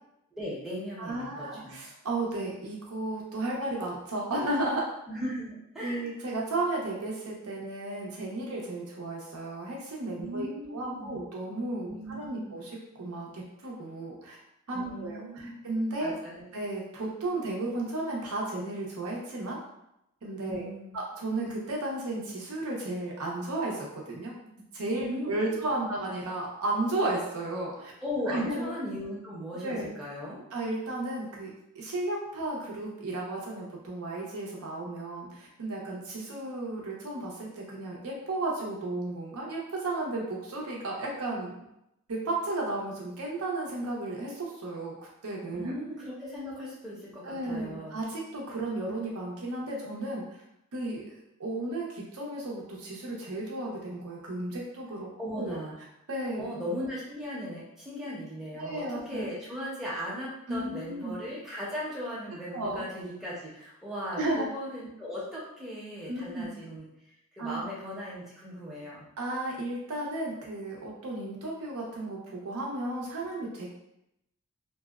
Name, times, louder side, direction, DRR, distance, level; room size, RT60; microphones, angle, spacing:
voice 1, 0.3-1.8 5.1-6.1 10.2-11.2 11.9-12.5 14.7-15.5 16.0-16.5 20.4-21.0 25.0-26.0 28.0-30.4 45.6-48.0 55.2-55.7 56.4-66.9 67.3-69.0, equal, ahead, -7 dB, 0.6 m, -38 dB
voice 2, 1.0-4.8 5.8-14.4 14.7-16.1 16.5-19.6 20.2-20.7 20.9-24.3 24.7-27.9 28.3-28.7 29.6-29.9 30.5-31.5 31.7-41.6 42.1-45.0 45.2-45.7 47.2-50.3 50.7-55.6 56.1-56.5 58.6-59.3 60.5-61.2 62.5-62.8 64.1-64.5 66.1-66.5 67.4-67.6 69.2-73.7, right 2 dB, 85° right, -2 dB, 0.6 m, -34 dB
2.6 x 2.1 x 2.3 m, 0.84 s
head